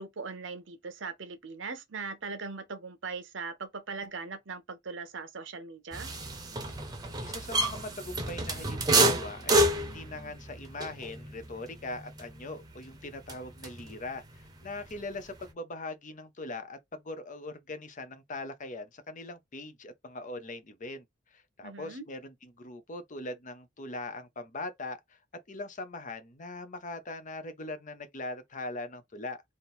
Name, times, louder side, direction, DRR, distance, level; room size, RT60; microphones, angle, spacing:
voice 1, 0.0-6.1 21.6-22.1, right 4 dB, 70° right, 0.8 m, -40 dB
sound 1, 5.9-14.0 14.3-15.5, right 1 dB, 20° right, 0.9 m, -30 dB
voice 2, 7.2-21.0 21.3-25.2 25.5-29.4, left 2 dB, 40° left, 0.8 m, -41 dB
3.7 x 2.6 x 4.3 m
head